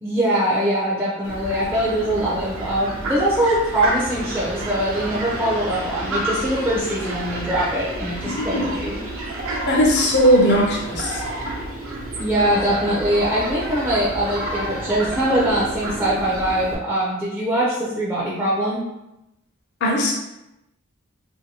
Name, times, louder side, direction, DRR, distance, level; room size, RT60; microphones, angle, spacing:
voice 1, 0.0-9.0 12.2-18.8, right 1 dB, 10° right, -7 dB, 0.4 m, -22 dB
Fowl, 1.2-16.7, right 1 dB, 65° right, 0.6 m, -30 dB
voice 2, 8.2-8.6 9.7-11.2 19.8-20.1, equal, 50° left, -2 dB, 0.5 m, -18 dB
2.6 x 2.5 x 2.8 m, 0.90 s
head